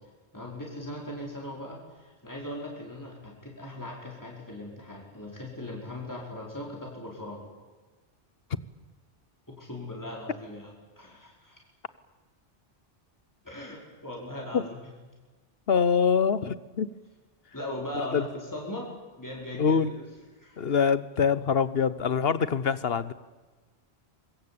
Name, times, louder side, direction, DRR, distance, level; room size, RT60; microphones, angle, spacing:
voice 1, 0.3-7.4 9.5-11.6 13.4-14.8 17.5-18.9 19.2-20.0 20.4-20.7, left 1 dB, 15° left, -2 dB, 5.0 m, -39 dB
voice 2, 15.7-16.9 17.9-18.3 19.6-19.9 20.6-23.1, left 6 dB, 65° left, 16 dB, 1.2 m, -24 dB
25.0 x 22.0 x 8.7 m, 1.3 s
omnidirectional pair, 1.1 m